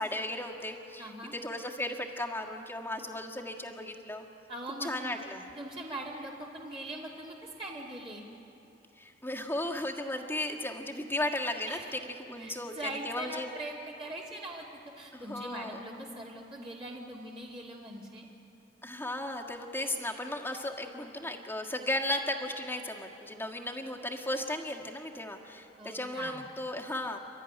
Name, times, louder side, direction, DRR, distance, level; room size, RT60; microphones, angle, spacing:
voice 1, 0.0-4.3 4.8-5.5 9.0-13.5 15.1-15.8 18.8-27.2, left 1 dB, 15° left, 1 dB, 1.7 m, -35 dB
voice 2, 1.0-1.3 4.5-5.1 5.6-8.2 11.7-11.9 12.4-14.7 15.0-18.3 25.8-26.4, right 1 dB, 35° right, -4 dB, 2.5 m, -41 dB
29.5 x 13.0 x 10.0 m, 2.9 s
head